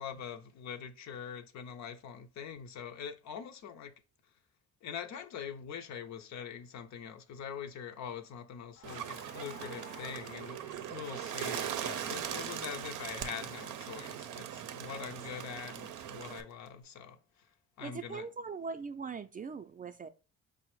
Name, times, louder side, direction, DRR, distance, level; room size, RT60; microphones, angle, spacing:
voice 1, 0.0-4.0 4.8-17.5 17.8-18.3, left 7 dB, 65° left, 0.5 m, -43 dB
Crackle, 8.8-14.6 14.9-16.7, left 4 dB, 85° left, 0.9 m, -55 dB
Bird, 8.8-16.4, right 10 dB, 90° right, 0.5 m, -40 dB
voice 2, 17.8-20.1, right 5 dB, 30° right, 0.4 m, -41 dB
4.9 x 2.1 x 4.6 m
cardioid pair, 90°, 30 cm